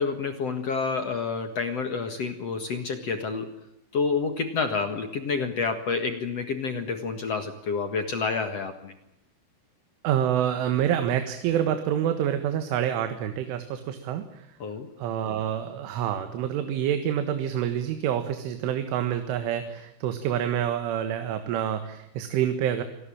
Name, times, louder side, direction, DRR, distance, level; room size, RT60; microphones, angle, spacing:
voice 1, 0.0-3.5 3.9-8.9 14.6-14.9, left 4 dB, 60° left, 8 dB, 1.7 m, -29 dB
voice 2, 10.0-14.5 15.0-22.8, right 10 dB, 80° right, 8 dB, 4.1 m, -27 dB
26.5 x 19.0 x 8.7 m, 0.86 s
omnidirectional pair, 5.5 m